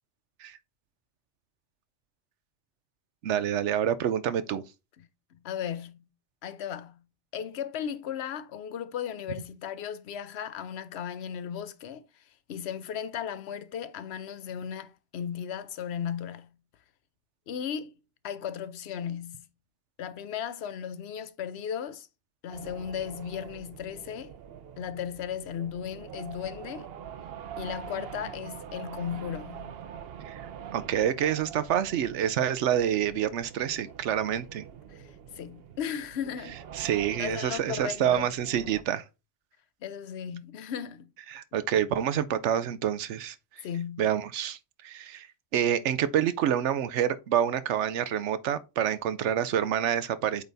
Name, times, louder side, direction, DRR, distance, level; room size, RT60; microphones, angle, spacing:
voice 1, 3.2-4.6 30.2-30.4 30.7-34.7 36.7-39.0 41.3-43.4 44.0-45.3 45.5-50.4, right 10 dB, 85° right, 1.0 m, -27 dB
voice 2, 5.0-6.1 6.4-7.1 7.3-12.0 12.5-16.6 17.5-17.9 18.2-19.5 20.0-22.1 22.4-24.3 24.8-26.9 27.6-29.9 34.9-36.9 37.2-38.3 39.8-41.1 43.6-44.1, left 8 dB, 70° left, 0.9 m, -36 dB
sound 1, 22.5-38.8, right 8 dB, 65° right, 0.8 m, -45 dB
8.2 x 4.0 x 3.4 m
omnidirectional pair, 1.2 m